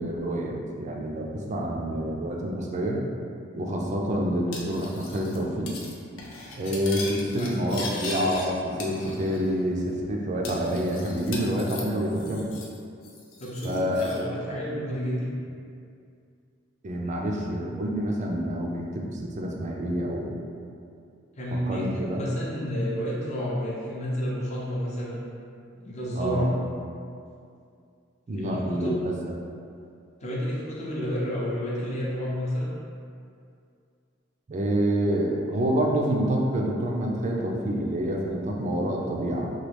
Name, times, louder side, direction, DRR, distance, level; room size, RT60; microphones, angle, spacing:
voice 1, 0.0-3.0 3.5-5.7 6.6-12.5 13.6-14.1 14.5-14.6 16.8-20.3 21.7-22.2 26.2-26.5 28.3-29.2 34.5-39.5, equal, 35° right, -1 dB, 0.4 m, -27 dB
Cutlery silverware, 4.5-5.4 5.7-5.9 6.2-8.5 8.8-9.5 9.8-9.9 10.4-12.8 13.0-14.2, left 3 dB, 80° left, 0.5 m, -39 dB
voice 2, 13.4-15.3 21.4-25.2 25.7-26.5 28.4-29.0 30.2-32.7, equal, 35° left, -5 dB, 0.6 m, -30 dB
3.0 x 2.3 x 3.3 m, 2.4 s
head